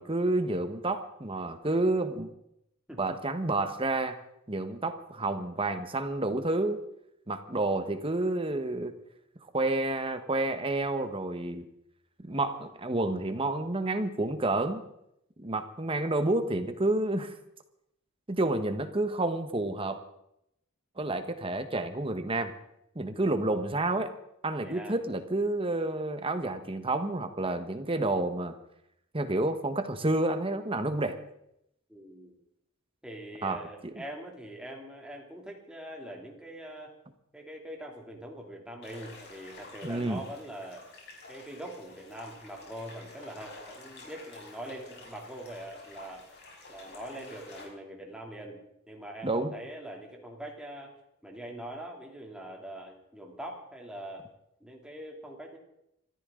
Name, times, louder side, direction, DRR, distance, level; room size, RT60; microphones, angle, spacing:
voice 1, 0.0-2.3 3.0-4.2 4.5-6.8 7.3-8.9 9.5-11.6 12.2-14.8 15.4-17.3 18.3-20.0 21.0-22.5 22.9-24.1 24.4-28.6 29.1-31.2 33.4-33.9 39.8-40.2 49.2-49.5, right 2 dB, 25° right, 9 dB, 1.2 m, -29 dB
voice 2, 24.6-25.0 31.9-32.3 33.0-36.9 37.3-40.9 41.3-46.3 46.7-50.9 51.2-54.3 54.6-55.6, right 1 dB, 5° right, 0 dB, 2.8 m, -43 dB
sound 1, 38.8-47.6, left 2 dB, 50° left, 5.7 m, -50 dB
26.5 x 14.0 x 3.8 m, 0.78 s
head